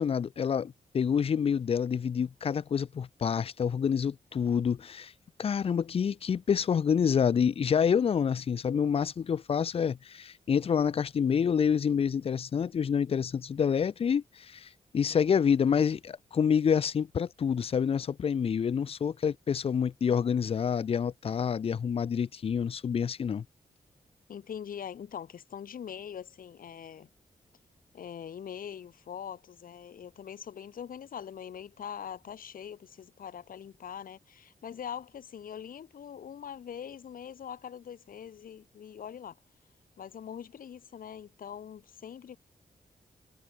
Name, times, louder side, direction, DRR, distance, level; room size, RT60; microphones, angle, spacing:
voice 1, 0.0-5.1 5.4-14.7 14.9-23.4, left 7 dB, 40° left, 0.4 m, -27 dB
voice 2, 24.3-27.1 27.9-39.4 40.0-42.4, left 8 dB, 75° left, 1.2 m, -43 dB
wide cardioid pair, 100°, 15 cm